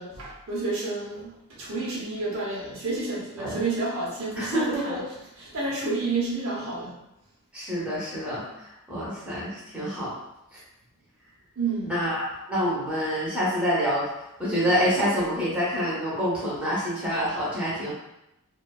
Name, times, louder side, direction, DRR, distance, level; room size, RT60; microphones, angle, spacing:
voice 1, 0.0-5.0 5.4-6.9 11.6-11.9, right 3 dB, 80° right, -6 dB, 0.8 m, -30 dB
voice 2, 4.3-5.0 5.6-5.8 7.5-10.1 10.5-10.6 11.8-17.9, equal, 5° right, -9 dB, 0.7 m, -27 dB
2.5 x 2.2 x 2.2 m, 0.88 s
head